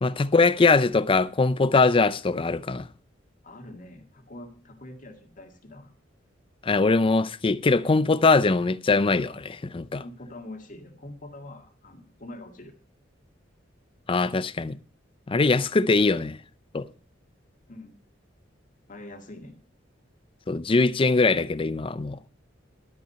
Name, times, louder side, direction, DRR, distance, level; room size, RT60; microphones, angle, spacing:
voice 1, 0.0-2.9 6.6-10.0 14.1-14.8 15.3-16.4 16.7-16.9 20.5-22.2, left 3 dB, 30° left, 0.5 m, -22 dB
voice 2, 3.4-5.9 10.0-12.7 17.7-17.9 18.9-19.5, left 1 dB, 45° left, 2.1 m, -44 dB
12.0 x 8.6 x 5.7 m
head